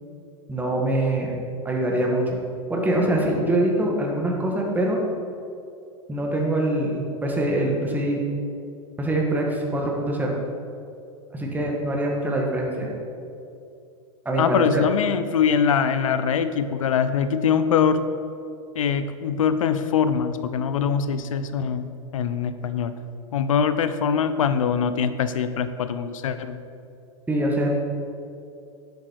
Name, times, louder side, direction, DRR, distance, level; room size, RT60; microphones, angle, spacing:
voice 1, 0.5-1.3 1.6-2.2 2.7-5.0 6.1-8.2 9.0-10.4 11.3-12.9 14.2-14.8 27.3-27.8, right 1 dB, 10° right, -1 dB, 1.8 m, -24 dB
voice 2, 14.4-18.0 18.8-22.9 23.3-26.6, left 7 dB, 85° left, 11 dB, 0.7 m, -23 dB
10.5 x 8.2 x 4.7 m, 2.6 s
hypercardioid pair, 105°, 17 cm